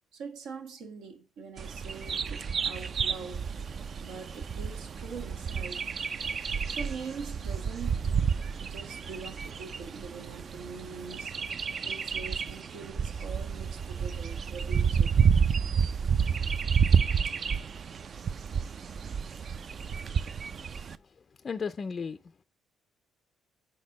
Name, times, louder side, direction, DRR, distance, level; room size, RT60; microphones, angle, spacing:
voice 1, 0.1-3.5 4.0-8.1 8.6-11.3 11.8-15.1, right 5 dB, 85° right, 1.2 m, -43 dB
Bird vocalization bird call bird song, 1.6-21.0, right 6 dB, 50° right, 0.4 m, -30 dB
voice 2, 21.0-22.2, left 5 dB, 40° left, 0.3 m, -35 dB
5.6 x 4.3 x 5.2 m
cardioid pair, 80°, 0 cm